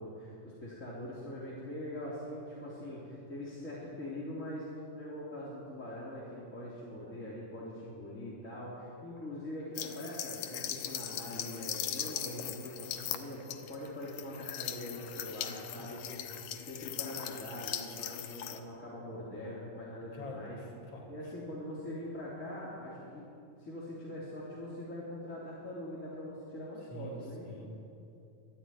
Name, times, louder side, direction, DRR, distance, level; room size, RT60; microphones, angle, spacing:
voice 1, 0.0-16.2 16.6-20.6 21.1-27.5, left 1 dB, 20° left, -7 dB, 3.5 m, -43 dB
sound 1, 9.8-18.6, left 10 dB, 70° left, 2.4 m, -40 dB
voice 2, 20.1-21.3 26.9-27.7, equal, 45° left, 0 dB, 5.0 m, -46 dB
25.0 x 12.5 x 9.6 m, 2.8 s
omnidirectional pair, 3.9 m